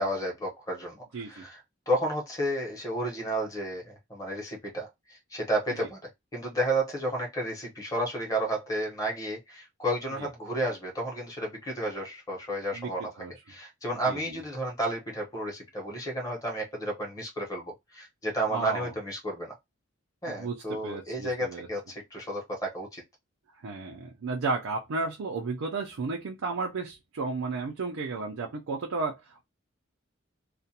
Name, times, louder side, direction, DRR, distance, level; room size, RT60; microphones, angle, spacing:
voice 1, 0.0-6.0 6.3-19.5 20.2-23.0, right 1 dB, 15° left, 0.9 m, -32 dB
voice 2, 1.1-1.5 5.8-5.9 10.2-10.3 12.7-12.9 13.2-13.3 14.1-14.4 18.5-18.9 20.3-21.7 23.6-29.4, right 3 dB, 90° right, 0.5 m, -33 dB
2.4 x 2.1 x 2.7 m
head